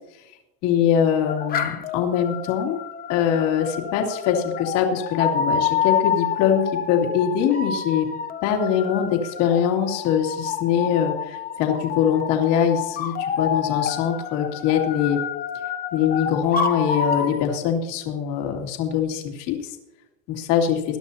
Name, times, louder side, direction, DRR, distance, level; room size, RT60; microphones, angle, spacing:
voice 1, 0.6-2.8 3.1-8.0 8.4-15.2 15.9-19.8 20.3-20.8, left 8 dB, 60° left, 1 dB, 2.7 m, -23 dB
sound 1, 1.3-17.4, left 7 dB, 20° left, 0.8 m, -28 dB
21.0 x 12.0 x 2.8 m, 0.91 s
cardioid pair, 165°, 41 cm